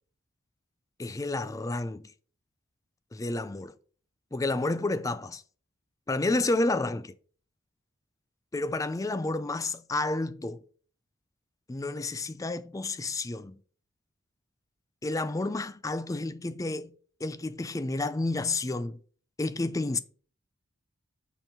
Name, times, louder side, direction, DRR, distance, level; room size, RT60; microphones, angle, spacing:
voice 1, 1.0-2.1 3.1-3.7 4.3-5.4 6.1-7.1 8.5-10.6 11.7-13.6 15.0-16.9 17.2-19.0 19.4-20.0, left 2 dB, 15° left, 0.4 m, -30 dB
5.6 x 4.5 x 5.7 m
head